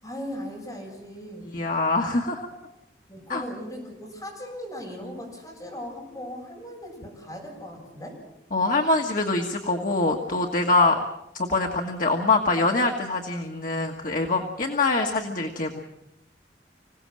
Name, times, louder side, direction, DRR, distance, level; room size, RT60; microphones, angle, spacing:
voice 1, 0.0-1.6 3.1-8.2, equal, 20° left, -2 dB, 7.1 m, -38 dB
voice 2, 1.5-2.5 3.3-3.4 8.5-11.0 11.3-15.8, left 3 dB, 50° left, 1 dB, 1.5 m, -24 dB
26.0 x 17.0 x 7.6 m, 0.87 s
head